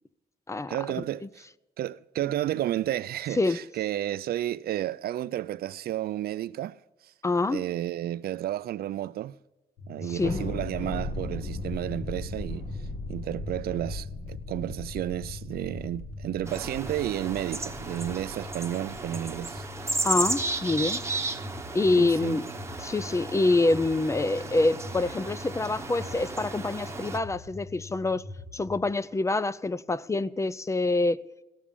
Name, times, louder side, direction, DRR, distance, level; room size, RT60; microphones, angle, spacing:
voice 1, 0.7-1.4 1.8-6.8 7.0-7.1 7.5-9.3 9.9-12.6 13.1-19.6 22.0-22.4, right 13 dB, 75° right, 0.4 m, -32 dB
voice 2, 7.2-7.6 10.1-10.4 20.0-21.0 21.7-22.5 22.8-28.3 28.5-31.2, left 2 dB, 20° left, 0.4 m, -26 dB
sound 1, 9.8-28.8, left 3 dB, 70° left, 5.2 m, -43 dB
Thunder, 10.2-20.9, left 2 dB, 45° left, 1.6 m, -38 dB
sound 2, 16.5-27.2, right 2 dB, 15° right, 1.1 m, -35 dB
17.5 x 7.4 x 8.6 m
cardioid pair, 105°, 16 cm